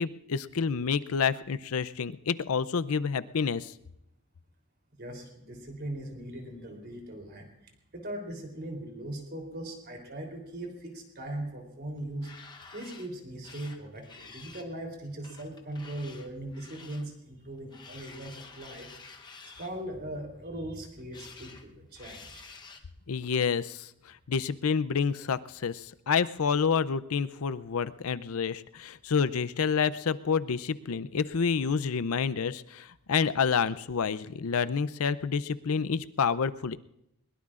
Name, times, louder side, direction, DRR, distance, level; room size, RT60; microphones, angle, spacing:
voice 1, 0.0-3.7 23.1-23.9 24.3-36.8, left 6 dB, 75° left, 15 dB, 0.5 m, -28 dB
voice 2, 5.0-12.3 12.7-18.9 19.6-22.5, right 1 dB, 45° right, 2 dB, 3.5 m, -39 dB
sound 1, 12.0-13.1 13.4-14.7 15.2-17.1 17.7-19.7 20.8-21.6 21.9-22.8, left 4 dB, 20° left, 0.9 m, -49 dB
21.5 x 21.5 x 2.5 m, 0.82 s
head